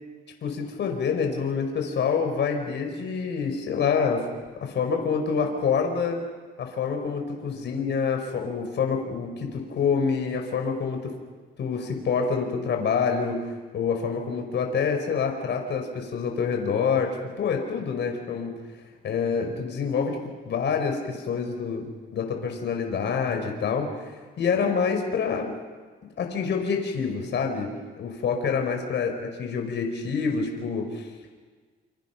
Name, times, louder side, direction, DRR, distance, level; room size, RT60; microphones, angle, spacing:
voice 1, 0.4-4.2 4.6-6.2 6.6-11.1 11.6-13.4 13.7-18.5 19.0-20.2 20.4-21.9 22.1-25.5 26.2-27.7 28.0-29.1 29.4-31.1, left 6 dB, 65° left, 3 dB, 4.9 m, -27 dB
28.5 x 26.5 x 6.0 m, 1.5 s
cardioid pair, 90°, 20 cm